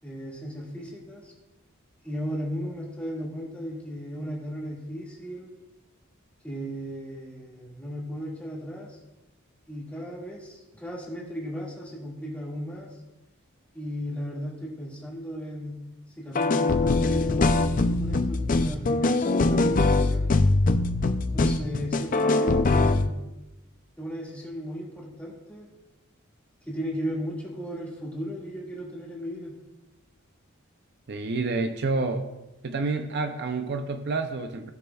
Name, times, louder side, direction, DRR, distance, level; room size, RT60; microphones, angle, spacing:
voice 1, 0.0-1.3 2.0-5.5 6.4-9.0 9.7-13.0 13.7-15.8 16.1-20.3 21.3-23.2 24.0-25.7 26.6-29.6, equal, 5° left, -4 dB, 2.0 m, -36 dB
sound 1, 16.4-23.1, left 2 dB, 40° left, 0.4 m, -22 dB
voice 2, 31.1-32.3 32.6-34.7, right 3 dB, 50° right, 7 dB, 0.5 m, -28 dB
16.0 x 6.6 x 2.3 m, 1.0 s
head